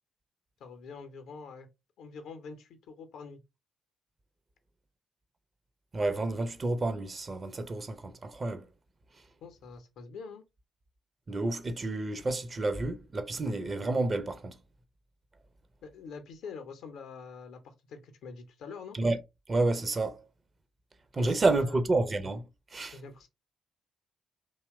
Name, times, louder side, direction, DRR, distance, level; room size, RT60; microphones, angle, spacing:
voice 1, 0.6-1.7 2.0-3.4 9.4-10.4 15.8-19.0 21.2-21.8 22.9-23.3, left 5 dB, 60° left, 0.5 m, -45 dB
voice 2, 5.9-8.7 11.3-14.5 18.9-19.2 19.5-20.2 21.1-22.5 22.7-23.0, right 2 dB, 35° right, 0.5 m, -29 dB
2.8 x 2.1 x 3.3 m
figure-of-eight pair, 40°, 0 cm